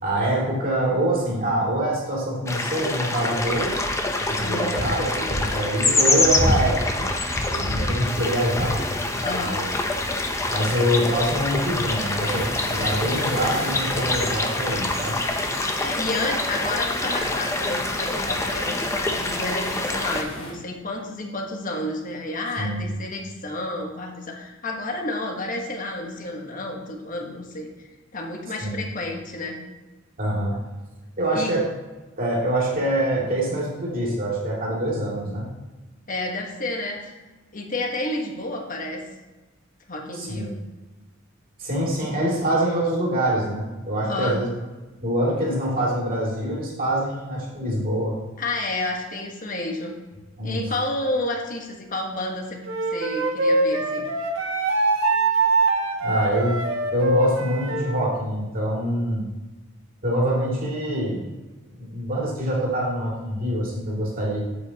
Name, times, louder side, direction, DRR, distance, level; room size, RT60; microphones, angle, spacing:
voice 1, 0.0-3.7 4.2-7.1 7.5-8.8 9.4-9.6 10.5-15.2 22.6-22.9 28.6-28.8 30.2-30.6 31.2-31.7 32.2-35.5 40.1-40.5 41.6-44.5 45.0-48.2 50.4-50.6 56.0-56.6 56.9-59.2 60.0-61.3 61.8-64.4, right 1 dB, 45° right, -4 dB, 2.5 m, -25 dB
sound 1, 2.5-20.2, left 2 dB, 15° left, 0.6 m, -25 dB
voice 2, 4.4-4.7 7.8-8.0 9.2-9.6 15.8-27.7 28.1-29.6 31.3-31.5 36.1-37.1 37.5-39.0 39.9-40.6 44.0-44.4 48.4-49.9 50.4-52.6 52.9-54.1, left 2 dB, 40° left, 1 dB, 1.3 m, -30 dB
sound 2, 12.2-20.5, left 1 dB, 75° left, 2.7 m, -36 dB
Wind instrument woodwind instrument, 52.7-58.0, right 2 dB, 70° right, 1.2 m, -23 dB
8.4 x 7.8 x 2.9 m, 1.2 s
head